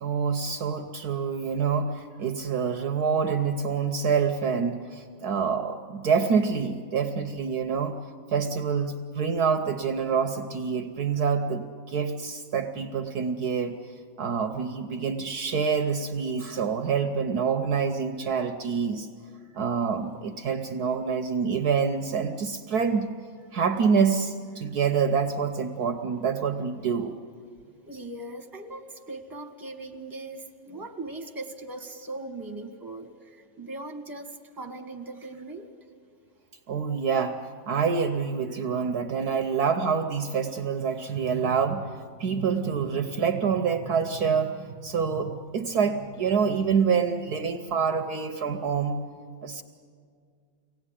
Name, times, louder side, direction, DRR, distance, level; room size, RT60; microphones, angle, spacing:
voice 1, 0.0-8.0 8.3-13.8 14.2-19.1 19.5-23.1 23.5-27.2 36.7-49.0 49.4-49.6, right 6 dB, 65° right, 6 dB, 1.3 m, -26 dB
voice 2, 27.8-35.7, right 2 dB, 10° right, 2 dB, 1.7 m, -39 dB
24.5 x 18.0 x 10.0 m, 2.1 s
omnidirectional pair, 1.9 m